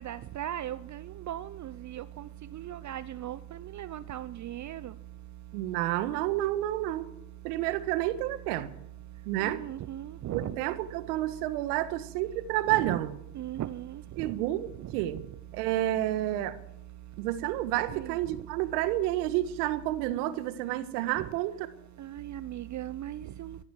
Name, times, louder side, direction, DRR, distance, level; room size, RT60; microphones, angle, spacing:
voice 1, 0.0-2.0 2.5-3.4 3.7-4.9 9.4-10.5 12.7-13.0 13.4-14.3 17.9-18.1 21.2-21.3 22.0-23.6, right 12 dB, 40° right, 14 dB, 0.8 m, -37 dB
voice 2, 5.5-7.1 7.4-8.7 9.3-9.6 10.3-13.2 14.2-15.2 15.5-16.6 17.2-21.5, right 14 dB, 75° right, 12 dB, 1.7 m, -30 dB
15.5 x 12.0 x 7.7 m, 0.83 s
hypercardioid pair, 80°, 46 cm